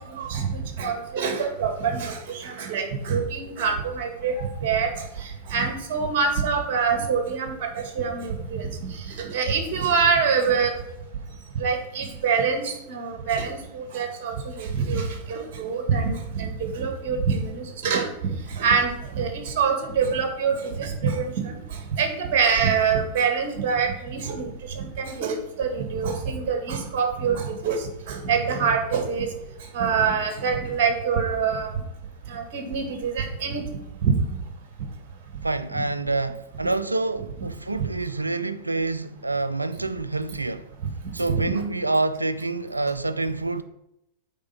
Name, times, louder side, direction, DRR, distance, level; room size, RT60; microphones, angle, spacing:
voice 1, 0.1-10.7 11.6-18.1 18.5-29.3 29.7-31.7 32.3-33.6 34.0-34.2 35.7-35.8 37.8-37.9 41.3-41.4, right 5 dB, 50° right, 2.1 m, -25 dB
voice 2, 35.4-40.7 41.1-43.6, right 2 dB, 85° right, 0.5 m, -27 dB
8.5 x 4.5 x 5.8 m
figure-of-eight pair, 90°, 0 cm